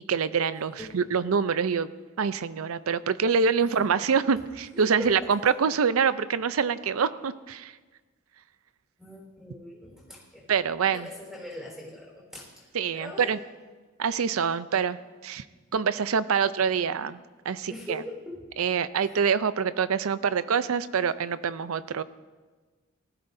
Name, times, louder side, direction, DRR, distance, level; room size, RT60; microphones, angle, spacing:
voice 1, 0.1-1.9 2.2-7.7 10.5-11.1 12.7-13.4 14.0-15.0 15.2-15.4 15.7-17.2 17.5-18.0 18.6-22.0, right 6 dB, 90° right, 15 dB, 0.5 m, -25 dB
voice 2, 3.6-4.1 4.7-5.1 9.0-10.5 10.9-12.7 12.9-13.3 17.7-18.4 19.0-19.2, left 1 dB, 5° right, -3 dB, 4.0 m, -41 dB
19.5 x 14.0 x 2.7 m, 1.3 s
head